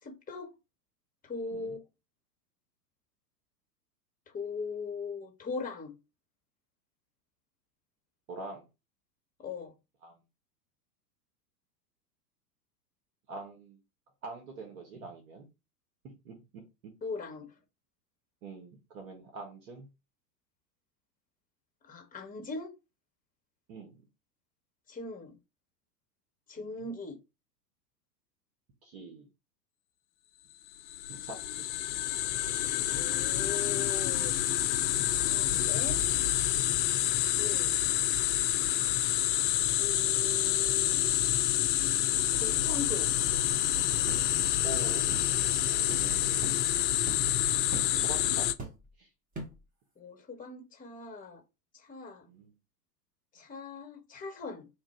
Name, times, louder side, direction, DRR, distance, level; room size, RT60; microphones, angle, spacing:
voice 1, 0.0-0.5 1.2-1.8 4.3-6.0 9.4-9.7 17.0-17.5 21.8-22.7 24.9-25.4 26.5-27.2 32.9-34.4 35.1-36.0 37.3-37.7 39.6-41.2 42.3-43.1 50.0-51.4 51.7-52.3 53.3-54.7, left 4 dB, 15° left, 1.1 m, -40 dB
voice 2, 8.3-8.6 10.0-10.2 13.3-13.8 14.2-15.5 16.0-16.4 18.4-19.9 23.7-24.0 26.6-26.7 28.8-29.3 31.1-31.7 34.6-34.9 44.5-45.2 45.7-46.5 48.0-48.5 49.0-49.1 52.3-52.5, right 2 dB, 55° right, 1.4 m, -44 dB
sound 1, 30.8-48.5, left 12 dB, 45° left, 0.5 m, -28 dB
sound 2, 44.1-44.3 45.1-45.3 45.9-46.0 46.4-46.6 47.1-47.3 47.7-47.9 48.6-48.9 49.3-49.6, right 2 dB, 15° right, 0.8 m, -41 dB
3.2 x 2.5 x 4.3 m
hypercardioid pair, 100°, 49 cm